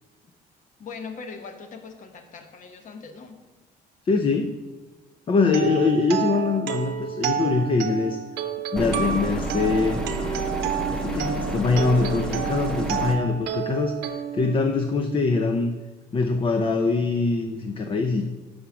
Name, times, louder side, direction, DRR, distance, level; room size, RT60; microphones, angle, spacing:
voice 1, 0.8-3.4, left 5 dB, 50° left, 6 dB, 1.0 m, -40 dB
voice 2, 4.1-4.5 5.3-8.2 8.7-10.0 10.9-15.7 16.1-18.2, left 4 dB, 30° left, 6 dB, 0.5 m, -23 dB
sound 1, 5.4-15.3, right 9 dB, 80° right, 0.7 m, -30 dB
sound 2, 8.8-13.2, right 1 dB, 5° left, 0.9 m, -30 dB
5.6 x 5.0 x 5.9 m, 1.2 s
cardioid pair, 110°, 17 cm